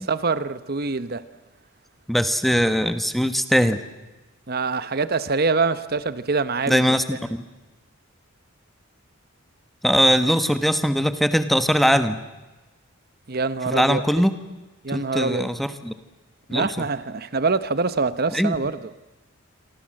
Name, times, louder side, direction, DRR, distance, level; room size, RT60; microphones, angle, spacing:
voice 1, 0.1-1.2 4.5-6.8 13.3-14.0 14.8-15.5 16.5-18.8, right 4 dB, 45° right, 13 dB, 1.0 m, -24 dB
voice 2, 2.1-3.8 6.7-7.4 9.8-12.2 13.7-14.3 14.9-15.9 16.5-16.9 18.3-18.6, equal, ahead, 10 dB, 1.3 m, -21 dB
28.5 x 24.0 x 7.7 m, 1.1 s
head